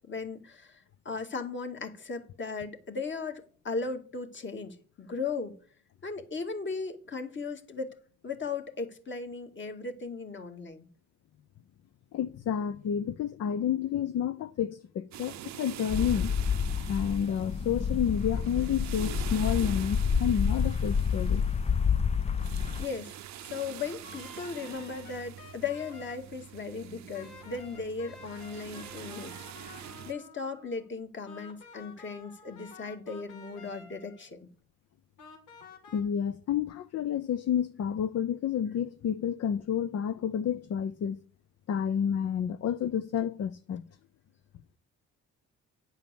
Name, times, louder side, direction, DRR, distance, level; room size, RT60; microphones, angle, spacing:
voice 1, 0.1-5.5 6.0-8.0 8.2-10.9 22.8-23.1 23.4-34.5, left 4 dB, 40° left, 2.2 m, -37 dB
voice 2, 12.1-16.3 16.9-21.4 35.9-41.2 41.7-43.8, left 8 dB, 55° left, 0.7 m, -30 dB
sound 1, 15.1-30.1, right 11 dB, 65° right, 0.7 m, -45 dB
sound 2, 15.9-22.8, left 6 dB, 20° left, 0.4 m, -29 dB
sound 3, 23.8-26.2 27.1-30.9 31.3-34.3 35.2-36.0, left 5 dB, 85° left, 3.0 m, -51 dB
10.5 x 5.6 x 7.0 m
cardioid pair, 90°, 30 cm